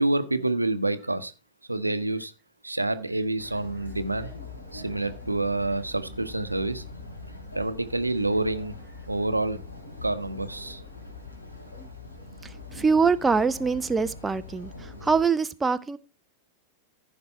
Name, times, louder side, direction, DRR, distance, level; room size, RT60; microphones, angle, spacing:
voice 1, 0.0-1.3 1.7-2.3 2.6-4.3 4.7-6.8 7.5-8.7 9.1-9.6 10.0-10.8, right 2 dB, 85° right, 0.8 m, -27 dB
sound 1, 3.4-15.2, left 3 dB, 80° left, 2.9 m, -42 dB
voice 2, 12.4-16.0, right 5 dB, 15° right, 0.5 m, -24 dB
14.5 x 5.2 x 4.4 m
figure-of-eight pair, 90°, 0 cm